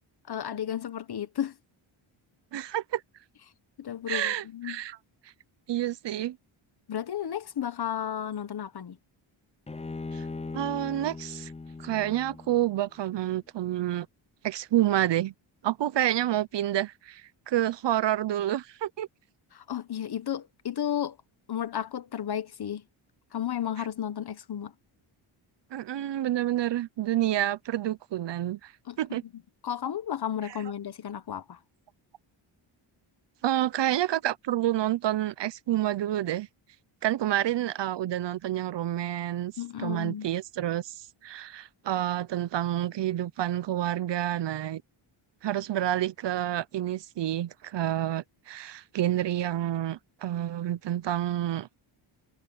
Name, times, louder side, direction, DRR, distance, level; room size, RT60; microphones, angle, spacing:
voice 1, 0.3-1.5 3.8-4.8 6.9-9.0 19.5-21.2 21.5-22.8 23.3-24.7 28.9-29.2 29.6-31.6 39.6-40.3, left 9 dB, 50° left, 1.4 m, -33 dB
voice 2, 2.5-3.0 4.1-5.0 5.7-6.4 10.1-10.2 10.5-11.5 11.8-14.1 14.4-15.3 15.6-19.1 25.7-28.7 29.0-29.2 30.5-30.6 33.4-36.5 37.0-39.5 39.8-41.0 41.2-44.8 45.4-51.7, right 12 dB, 60° right, 0.7 m, -28 dB
Bowed string instrument, 9.7-12.9, left 3 dB, 15° left, 0.6 m, -39 dB
cardioid pair, 120°, 50 cm